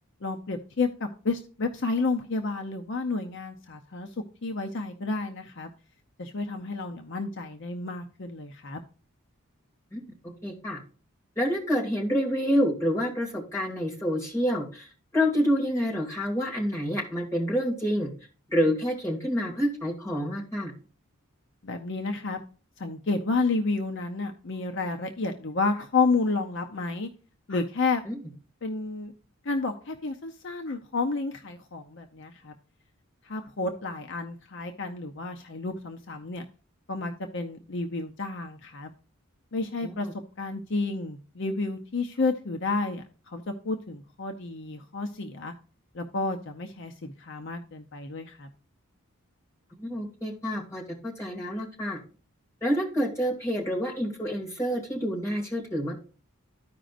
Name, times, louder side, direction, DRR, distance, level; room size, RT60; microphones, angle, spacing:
voice 1, 0.2-4.1 4.4-5.7 6.2-8.8 21.6-22.4 22.8-27.1 27.5-28.0 28.6-29.1 29.4-32.5 33.3-36.4 36.9-38.9 39.5-40.1 40.4-45.5 45.9-48.5, left 3 dB, 55° left, 5 dB, 0.7 m, -30 dB
voice 2, 10.4-10.8 11.4-14.9 15.1-18.1 18.5-20.7 28.1-28.2 39.8-40.1 49.7-52.0 52.6-55.9, equal, 15° left, -3 dB, 2.3 m, -28 dB
14.0 x 5.0 x 2.5 m, 0.37 s
head